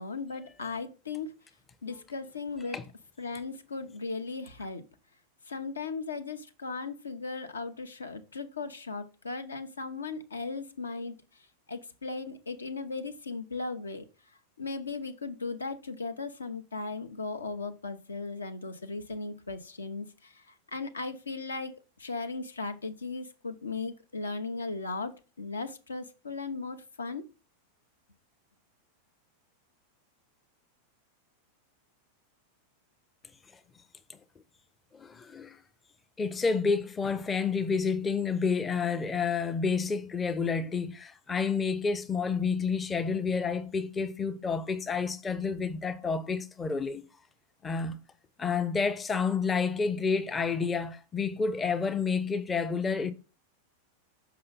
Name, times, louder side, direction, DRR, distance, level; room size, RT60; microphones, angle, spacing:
voice 1, 0.0-1.3 1.8-2.8 3.2-4.8 5.5-14.1 14.6-27.2, left 4 dB, 75° left, 0.8 m, -37 dB
voice 2, 34.9-35.6 36.2-47.0 47.6-48.0 48.4-53.1, left 5 dB, 15° left, 0.5 m, -29 dB
6.7 x 5.4 x 4.0 m
figure-of-eight pair, 90°, 0 cm